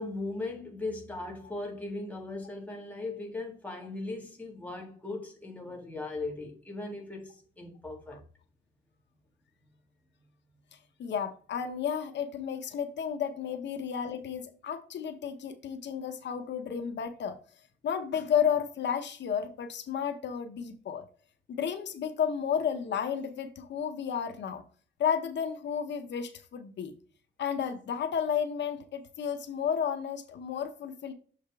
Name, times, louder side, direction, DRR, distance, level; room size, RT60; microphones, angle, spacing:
voice 1, 0.0-8.2, left 2 dB, 10° left, 1.6 m, -38 dB
voice 2, 11.0-17.4 17.8-21.0 21.5-24.6 25.0-26.9 27.4-31.1, left 8 dB, 70° left, 0.7 m, -32 dB
6.6 x 4.9 x 3.4 m
wide cardioid pair, 150°, 19 cm